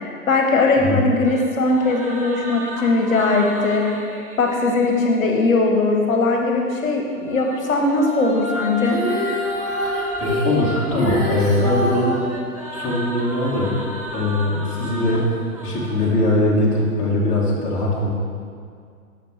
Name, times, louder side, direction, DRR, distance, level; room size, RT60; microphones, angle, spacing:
voice 1, 0.0-4.0 4.4-9.0, left 3 dB, 60° left, 1 dB, 1.0 m, -19 dB
sound 1, 1.2-5.2 7.0-16.6, right 1 dB, 25° right, 0.3 m, -33 dB
Female singing, 8.8-12.1 14.1-14.2, left 1 dB, ahead, 1.6 m, -25 dB
voice 2, 10.2-12.2 12.7-13.8 14.1-15.3 15.6-18.1, left 1 dB, 15° left, -5 dB, 1.0 m, -21 dB
6.9 x 6.1 x 3.1 m, 2.2 s
figure-of-eight pair, 115°, 45 cm